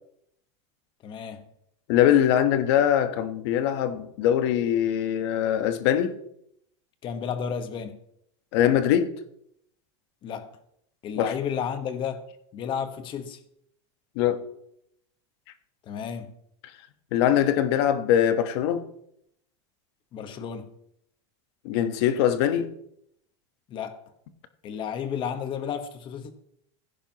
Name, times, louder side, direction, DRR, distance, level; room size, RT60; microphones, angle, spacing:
voice 1, 1.0-1.5 7.0-8.0 10.2-10.5 11.0-12.2 12.5-13.4 15.8-16.3 20.1-20.7 23.7-24.0 24.6-26.3, left 7 dB, 35° left, 1.3 m, -32 dB
voice 2, 1.9-6.1 8.5-9.1 11.2-11.3 14.1-14.4 17.1-18.8 21.6-22.7, left 10 dB, 60° left, 1.2 m, -22 dB
16.5 x 10.0 x 3.0 m
supercardioid pair, 145°, 15 cm